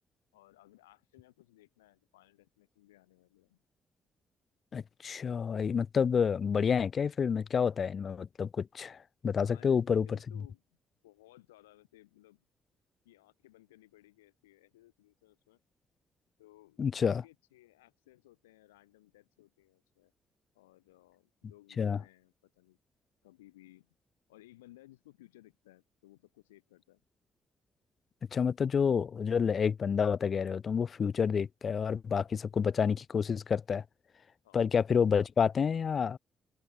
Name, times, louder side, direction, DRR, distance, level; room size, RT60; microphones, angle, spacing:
voice 1, 0.3-3.6 9.5-10.8 11.0-12.4 13.0-15.6 16.4-20.1 20.5-22.8 23.2-23.9 24.3-27.0 34.4-34.6, left 17 dB, 85° left, 2.4 m, -60 dB
voice 2, 4.7-10.1 16.8-17.2 21.8-22.0 28.3-33.8 34.5-36.2, left 6 dB, 50° left, 0.7 m, -29 dB
hypercardioid pair, 40°, 0 cm